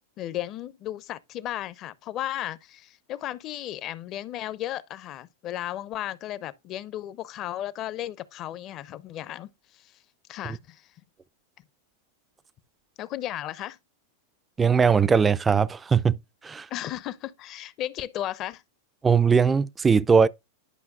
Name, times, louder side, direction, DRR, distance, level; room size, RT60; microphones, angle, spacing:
voice 1, 0.2-10.0 10.3-10.9 13.0-13.8 16.7-18.6, left 13 dB, 40° left, 0.6 m, -35 dB
voice 2, 14.6-16.2 16.4-16.7 19.0-20.3, right 6 dB, 15° right, 0.4 m, -20 dB
11.0 x 5.6 x 2.3 m
figure-of-eight pair, 95°, 0 cm